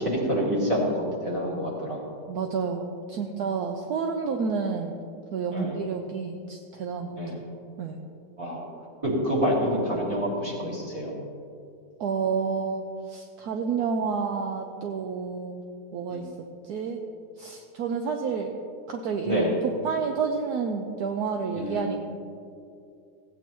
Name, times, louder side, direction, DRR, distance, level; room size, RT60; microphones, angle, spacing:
voice 1, 0.0-2.0 5.5-5.8 7.2-7.4 8.4-8.6 9.0-11.1 16.1-16.2 19.2-19.5 21.5-21.9, equal, 20° right, -6 dB, 2.3 m, -27 dB
voice 2, 2.3-5.0 5.3-7.2 7.8-8.0 12.0-15.6 15.9-16.2 16.7-17.0 17.4-18.5 18.9-22.0, right 5 dB, 70° right, 3 dB, 1.1 m, -30 dB
15.5 x 9.0 x 3.0 m, 2.5 s
omnidirectional pair, 1.9 m